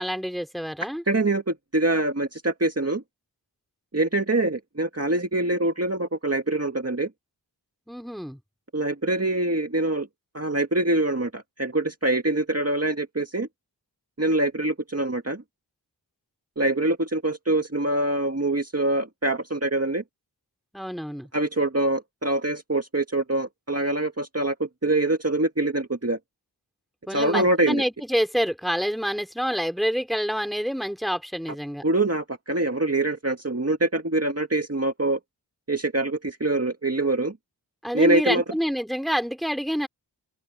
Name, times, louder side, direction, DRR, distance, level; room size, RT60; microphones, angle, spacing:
voice 1, 0.0-1.0 7.9-8.4 20.7-21.3 27.1-31.8 37.8-39.9, equal, ahead, 3.9 m, -27 dB
voice 2, 1.1-3.0 3.9-7.1 8.7-10.1 10.3-13.5 14.2-15.4 16.6-20.0 21.3-26.2 27.1-27.8 31.8-35.2 35.7-37.4 37.9-38.4, right 2 dB, 35° right, 2.1 m, -24 dB
open air
wide cardioid pair, 40°, 43 cm